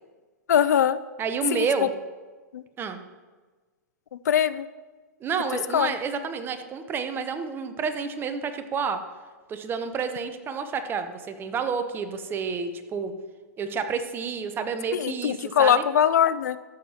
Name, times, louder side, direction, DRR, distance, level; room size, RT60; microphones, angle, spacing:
voice 1, 0.5-1.0 1.5-1.7 2.5-2.6 4.1-4.7 5.7-5.9 14.9-16.6, left 9 dB, 75° left, 15 dB, 0.4 m, -22 dB
voice 2, 1.2-1.9 2.8-3.0 5.2-9.0 9.5-13.1 13.6-15.8, right 5 dB, 25° right, 8 dB, 0.8 m, -29 dB
13.5 x 7.3 x 2.9 m, 1.3 s
hypercardioid pair, 115°, 9 cm